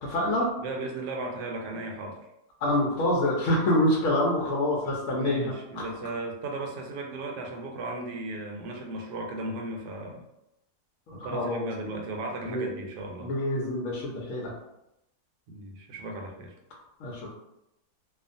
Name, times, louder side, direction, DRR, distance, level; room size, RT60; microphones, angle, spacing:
voice 1, 0.0-0.5 2.6-5.8 11.2-11.6 12.4-12.7 13.2-14.5 17.0-17.3, left 1 dB, 65° left, -3 dB, 0.8 m, -26 dB
voice 2, 0.6-2.2 5.1-10.2 11.1-13.3 15.5-16.5, right 2 dB, 80° right, 1 dB, 1.1 m, -36 dB
2.7 x 2.3 x 2.5 m, 0.86 s
omnidirectional pair, 1.8 m